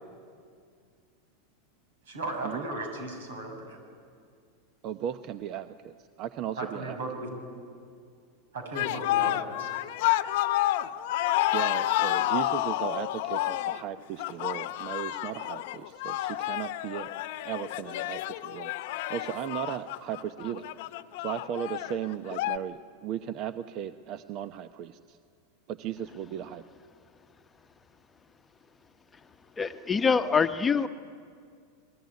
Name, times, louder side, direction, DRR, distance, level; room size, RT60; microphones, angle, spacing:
voice 1, 2.1-3.8 6.6-7.3 8.5-9.7, right 2 dB, 85° right, 5 dB, 6.9 m, -36 dB
voice 2, 4.8-7.0 11.5-17.1 17.4-18.7 19.1-20.7 21.2-25.2 25.7-26.6, right 10 dB, 50° right, 10 dB, 0.8 m, -36 dB
sound 1, 8.7-22.6, left 15 dB, 65° left, 0.9 m, -30 dB
voice 3, 29.6-30.9, left 5 dB, 20° left, 8 dB, 1.0 m, -24 dB
28.0 x 21.0 x 9.7 m, 2.2 s
hypercardioid pair, 115°, 0 cm